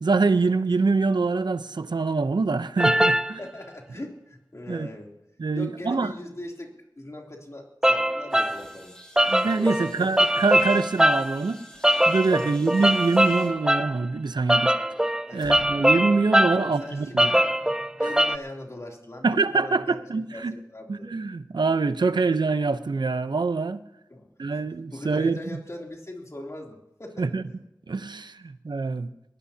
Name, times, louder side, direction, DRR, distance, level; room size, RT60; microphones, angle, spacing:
voice 1, 0.0-3.4 4.7-4.9 5.4-6.1 9.3-11.6 12.1-14.8 15.3-17.3 19.2-20.6 20.9-23.8 24.4-25.4 27.2-27.4 27.9-29.1, right 4 dB, 80° right, 0.8 m, -25 dB
sound 1, 2.8-3.3 7.8-8.6 9.2-11.4 11.8-13.9 14.5-16.7 17.2-18.4, right 1 dB, 10° right, 0.5 m, -22 dB
voice 2, 3.4-5.1 5.5-9.2 9.6-10.2 12.3-12.6 15.3-15.5 16.5-17.6 18.0-20.0 20.3-21.2 24.1-24.6 24.9-27.3, left 1 dB, 40° left, 3.1 m, -40 dB
sound 2, 8.3-13.5, equal, 10° left, 4.6 m, -51 dB
sound 3, 15.3-19.9, left 1 dB, 80° left, 4.9 m, -52 dB
21.0 x 16.5 x 2.9 m
wide cardioid pair, 60°, 7 cm